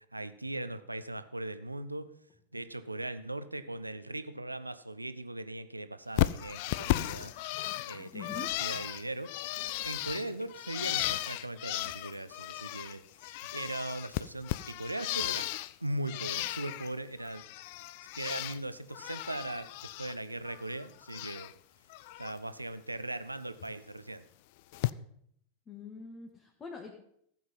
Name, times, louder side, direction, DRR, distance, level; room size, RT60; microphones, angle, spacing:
voice 1, 0.1-2.1 2.5-7.3 7.8-9.3 9.8-13.0 13.5-15.5 15.8-17.4 18.1-19.7 20.0-21.5 22.2-24.2, right 1 dB, 85° right, 13 dB, 0.7 m, -39 dB
Bird, 6.2-13.0 13.2-15.7 16.1-16.9 17.2-18.6 18.9-20.1 20.5-21.5 21.9-22.3 23.6-23.7 24.7-24.9, left 16 dB, 50° left, 0.4 m, -35 dB
voice 2, 8.1-8.5 25.7-26.9, left 5 dB, 20° left, 1 dB, 1.6 m, -44 dB
15.0 x 7.9 x 5.5 m, 0.70 s
figure-of-eight pair, 90°, 0 cm